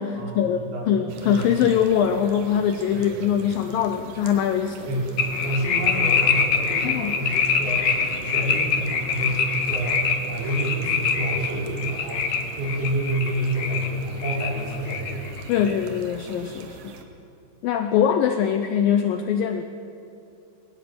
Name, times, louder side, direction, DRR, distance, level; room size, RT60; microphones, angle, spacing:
voice 1, 0.0-4.9 6.8-7.2 15.5-16.9 17.6-19.6, left 8 dB, 80° left, 7 dB, 2.0 m, -23 dB
sound 1, 1.1-17.0, right 5 dB, 65° right, 3.0 m, -42 dB
sound 2, 5.2-13.9 14.2-15.7, left 6 dB, 55° left, 1.9 m, -25 dB
voice 2, 5.4-8.0 8.2-15.3 15.6-15.7, right 1 dB, 80° right, -4 dB, 7.5 m, -28 dB
21.5 x 19.0 x 7.8 m, 2.7 s
omnidirectional pair, 5.1 m